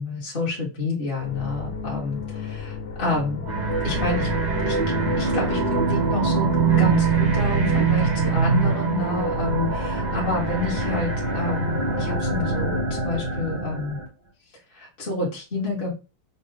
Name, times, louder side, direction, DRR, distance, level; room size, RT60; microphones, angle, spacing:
voice 1, 0.0-3.4 3.8-4.3 4.7-14.0 14.7-15.9, left 3 dB, 30° left, -5 dB, 1.2 m, -29 dB
sound 1, 1.2-13.3 13.6-14.0, left 6 dB, 80° left, 1.8 m, -36 dB
sound 2, 3.4-14.1, right 4 dB, 50° right, 0.5 m, -23 dB
5.9 x 2.3 x 3.2 m, 0.30 s
omnidirectional pair, 2.4 m